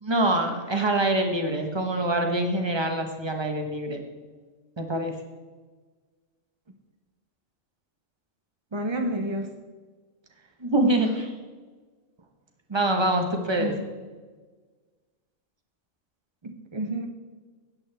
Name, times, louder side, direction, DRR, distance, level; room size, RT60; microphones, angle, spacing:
voice 1, 0.0-4.0 4.8-5.1 10.6-11.3 12.7-13.7, right 1 dB, 20° right, 3 dB, 1.0 m, -25 dB
voice 2, 8.7-9.5 13.6-13.7 16.4-17.1, right 1 dB, 45° right, 3 dB, 0.3 m, -29 dB
13.0 x 8.7 x 3.4 m, 1.4 s
omnidirectional pair, 1.4 m